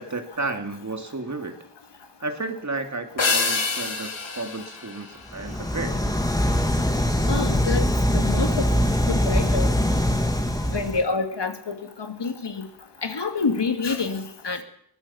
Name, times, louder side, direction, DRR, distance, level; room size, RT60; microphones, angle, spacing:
voice 1, 0.0-1.6 2.2-6.0, right 3 dB, 40° right, 6 dB, 2.6 m, -32 dB
sound 1, 3.2-5.8, left 4 dB, 85° left, 4.4 m, -27 dB
sound 2, 5.3-11.0, left 1 dB, 10° left, 2.8 m, -22 dB
voice 2, 7.3-7.8 8.1-8.7 9.1-9.7 10.7-12.7 13.0-14.6, left 4 dB, 65° left, 7 dB, 2.5 m, -27 dB
22.0 x 17.5 x 7.2 m, 0.71 s
wide cardioid pair, 90°, 45 cm